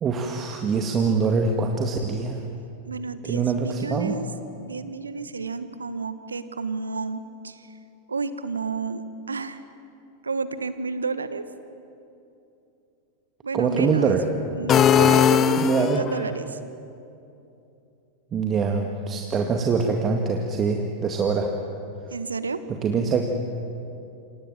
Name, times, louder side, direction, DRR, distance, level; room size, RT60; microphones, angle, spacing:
voice 1, 0.0-2.4 3.3-4.2 13.5-14.3 15.6-16.1 18.3-21.5 22.8-23.4, right 5 dB, 25° right, 3 dB, 2.1 m, -24 dB
voice 2, 2.9-4.3 4.6-7.7 8.1-9.0 9.3-9.6 10.2-11.4 13.4-14.2 14.5-16.6 22.1-22.6, right 4 dB, 75° right, 13 dB, 1.4 m, -31 dB
sound 1, 14.7-16.3, left 8 dB, 25° left, 0.9 m, -19 dB
28.5 x 27.0 x 7.5 m, 2.7 s
figure-of-eight pair, 90°, 0 cm